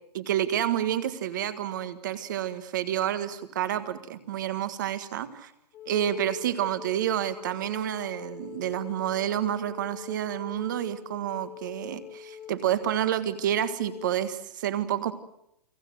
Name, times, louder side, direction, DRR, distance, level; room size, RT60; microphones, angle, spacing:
voice 1, 0.1-5.5 5.9-15.1, right 11 dB, 30° right, 12 dB, 1.6 m, -29 dB
Wind instrument woodwind instrument, 5.7-14.2, left 10 dB, 10° left, 1.0 m, -44 dB
29.5 x 20.5 x 7.9 m, 0.78 s
hypercardioid pair, 180°, 21 cm